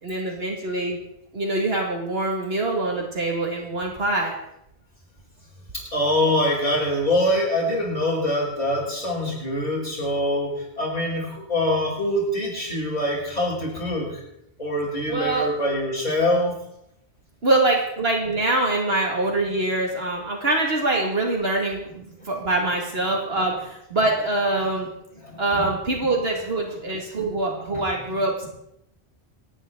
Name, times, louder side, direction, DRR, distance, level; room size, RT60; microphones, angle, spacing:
voice 1, 0.0-1.0 1.3-4.3 15.1-15.5 17.4-24.9 25.4-28.5, right 2 dB, 70° right, 0 dB, 2.4 m, -24 dB
voice 2, 5.7-14.2 14.6-16.6 25.2-25.6 27.4-27.9, left 1 dB, 40° left, -7 dB, 8.0 m, -24 dB
27.5 x 10.0 x 3.9 m, 0.80 s
omnidirectional pair, 1.1 m